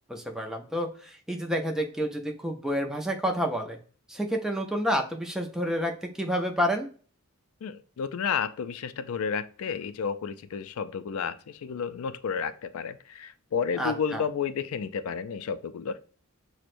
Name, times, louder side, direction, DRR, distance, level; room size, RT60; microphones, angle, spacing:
voice 1, 0.1-3.8 4.1-6.9 13.8-14.2, equal, ahead, 2 dB, 0.4 m, -29 dB
voice 2, 7.6-16.0, left 6 dB, 70° left, 12 dB, 0.3 m, -31 dB
6.0 x 2.1 x 2.5 m, 0.41 s
head